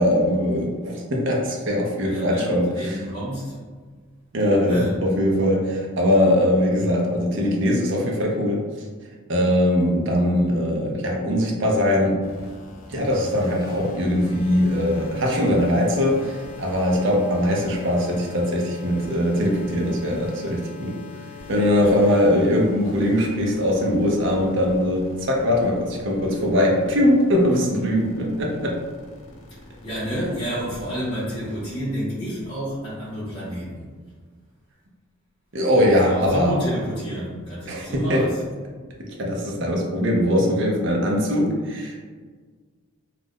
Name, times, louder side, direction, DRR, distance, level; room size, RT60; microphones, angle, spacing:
voice 1, 0.0-3.0 4.3-8.6 9.3-12.2 12.9-21.0 21.5-28.8 35.5-36.6 37.7-38.3 39.0-42.0, left 1 dB, 55° right, 0 dB, 0.5 m, -21 dB
voice 2, 2.0-3.6 4.6-5.1 21.4-21.5 21.8-22.0 29.5-33.9 35.8-38.4, equal, 20° left, -10 dB, 0.5 m, -30 dB
sound 1, 12.2-31.7, left 3 dB, 65° left, 0.6 m, -41 dB
2.4 x 2.0 x 3.5 m, 1.5 s
head